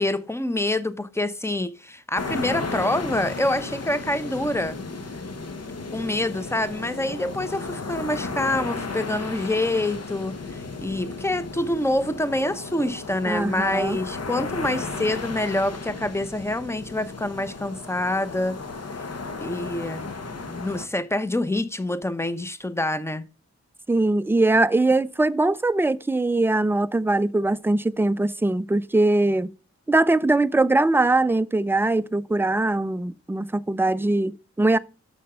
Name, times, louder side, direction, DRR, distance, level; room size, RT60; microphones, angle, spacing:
voice 1, 0.0-4.8 5.9-18.6 19.4-20.1 20.4-23.2, left 1 dB, 10° left, 0.9 m, -26 dB
sound 1, 2.2-20.9, left 3 dB, 55° left, 1.3 m, -34 dB
voice 2, 13.3-14.0 23.9-29.5 29.9-34.8, right 2 dB, 10° right, 0.4 m, -21 dB
6.5 x 6.4 x 5.5 m
cardioid pair, 65°, 30 cm